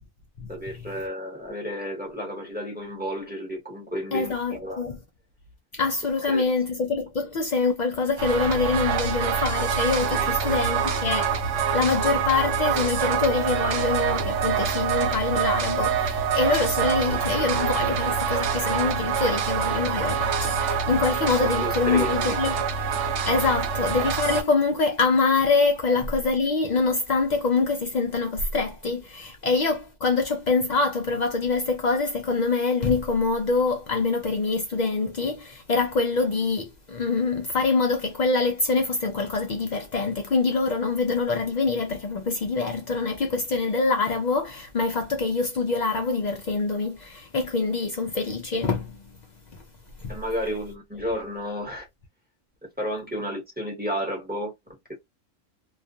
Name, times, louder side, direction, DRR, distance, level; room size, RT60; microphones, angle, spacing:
voice 1, 0.5-4.8 6.2-6.4 10.1-10.3 21.4-22.4 50.1-51.9 52.8-54.5, equal, 10° right, 0.8 m, -32 dB
voice 2, 4.1-5.0 5.7-22.6 23.2-49.0 50.0-50.2, left 4 dB, 90° left, 0.3 m, -25 dB
sound 1, 8.2-24.4, right 6 dB, 75° right, 0.9 m, -25 dB
2.4 x 2.3 x 2.5 m
omnidirectional pair, 1.3 m